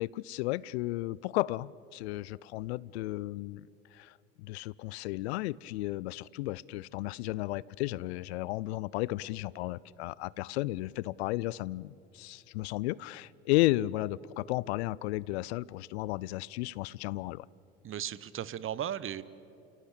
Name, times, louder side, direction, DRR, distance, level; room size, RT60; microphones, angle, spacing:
voice 1, 0.0-3.7 3.9-17.5, left 18 dB, 75° left, 24 dB, 0.5 m, -33 dB
voice 2, 17.8-19.2, right 10 dB, 40° right, 18 dB, 1.0 m, -36 dB
30.0 x 17.5 x 8.4 m, 2.7 s
hypercardioid pair, 65°, 33 cm